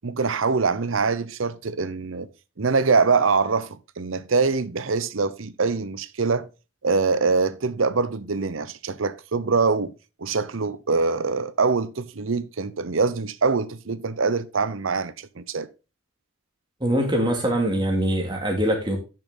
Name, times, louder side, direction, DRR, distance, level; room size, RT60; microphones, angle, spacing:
voice 1, 0.0-2.3 2.6-6.5 6.8-9.9 10.2-15.7, right 4 dB, 85° right, 0.8 m, -24 dB
voice 2, 16.8-19.0, right 1 dB, 20° right, 2.5 m, -23 dB
10.5 x 6.5 x 3.8 m
head